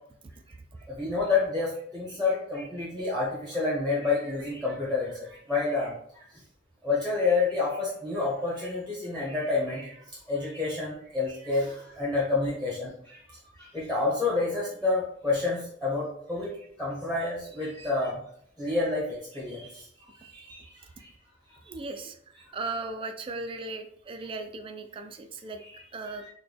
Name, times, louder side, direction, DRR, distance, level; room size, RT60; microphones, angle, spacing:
voice 1, 0.9-6.2 6.8-18.2 18.6-21.1 25.6-26.3, left 3 dB, 5° left, -5 dB, 0.9 m, -29 dB
voice 2, 21.6-22.2 22.5-25.6 25.9-26.2, right 3 dB, 25° right, 7 dB, 0.3 m, -37 dB
4.0 x 2.2 x 3.4 m, 0.67 s
head